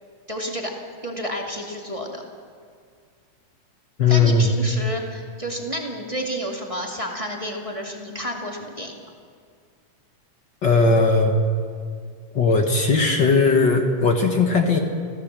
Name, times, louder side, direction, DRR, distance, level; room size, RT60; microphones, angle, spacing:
voice 1, 0.3-0.7 1.0-2.2 4.1-8.9, equal, 15° right, 0 dB, 1.7 m, -30 dB
voice 2, 4.0-4.5 10.6-11.4 12.3-14.8, left 4 dB, 45° left, 3 dB, 1.7 m, -18 dB
29.0 x 15.5 x 7.5 m, 2.1 s
omnidirectional pair, 3.4 m